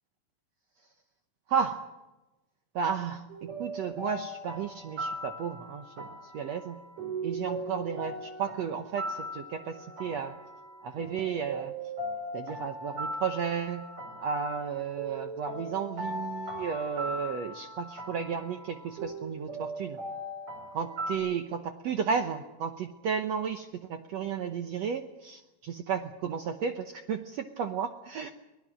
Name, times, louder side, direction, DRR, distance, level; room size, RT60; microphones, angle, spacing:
voice 1, 1.5-1.9 2.7-3.3 3.6-6.1 6.3-6.8 7.2-10.3 10.8-11.7 12.3-13.8 14.2-20.0 20.7-21.6 21.8-28.3, right 6 dB, 85° right, 7 dB, 1.5 m, -33 dB
sound 1, 3.3-21.2, right 1 dB, 45° right, 5.5 m, -39 dB
23.5 x 17.5 x 7.7 m, 1.0 s
omnidirectional pair, 4.4 m